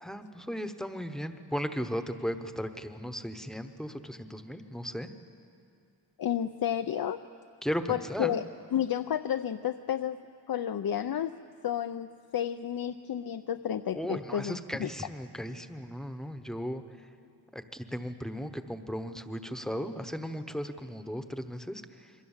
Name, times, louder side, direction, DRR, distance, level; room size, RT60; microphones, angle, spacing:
voice 1, 0.0-5.1 7.6-8.4 13.9-17.1 17.5-22.1, equal, ahead, 8 dB, 1.0 m, -36 dB
voice 2, 6.2-7.2 7.9-8.4 8.7-10.2 10.5-11.4 11.6-14.9, left 10 dB, 65° left, 8 dB, 0.6 m, -31 dB
27.5 x 23.0 x 7.3 m, 2.5 s
wide cardioid pair, 170°, 40 cm